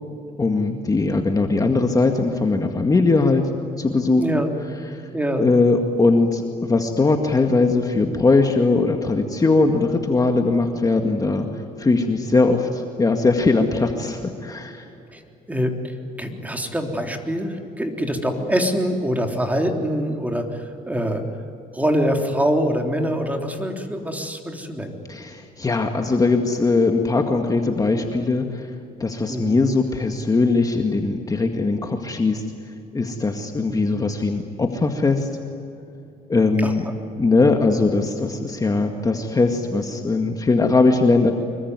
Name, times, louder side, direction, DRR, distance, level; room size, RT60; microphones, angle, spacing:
voice 1, 0.4-3.5 3.8-4.4 4.9-5.1 5.4-11.5 11.8-14.9 25.1-28.7 29.0-32.4 32.9-35.3 36.3-36.8 37.2-41.3, left 3 dB, 20° left, 4 dB, 2.0 m, -20 dB
voice 2, 3.9-4.5 5.1-5.5 15.1-15.2 15.5-21.2 21.7-24.9 29.3-29.6 36.6-36.7, equal, 10° right, 3 dB, 3.5 m, -24 dB
26.0 x 22.5 x 9.7 m, 2.7 s
cardioid pair, 110°, 17 cm